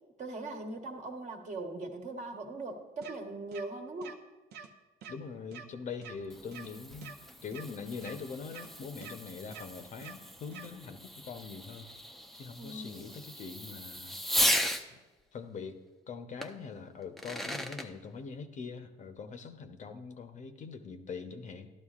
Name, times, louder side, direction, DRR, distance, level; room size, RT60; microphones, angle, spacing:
voice 1, 0.2-4.2 12.6-13.3, right 2 dB, 45° right, 3 dB, 1.3 m, -40 dB
sound 1, 3.0-3.1 3.5-3.6 4.0-4.1 4.5-4.7 5.0-5.1 5.5-5.6 6.0-6.1 6.5-6.7 7.0-7.1 7.5-7.6 8.0-8.1 8.5-8.7 9.0-9.1 9.5-9.6 10.0-10.1 10.5-10.7, right 7 dB, 70° right, 0.8 m, -46 dB
voice 2, 5.1-11.9 12.3-14.2 14.9-15.0 15.3-15.8 16.1-21.7, left 5 dB, 45° left, 7 dB, 0.7 m, -43 dB
Fireworks, 6.0-14.9 16.4-16.5 17.0-17.9, equal, ahead, 0.5 m, -36 dB
13.0 x 12.0 x 2.4 m, 1.2 s
cardioid pair, 110°, 17 cm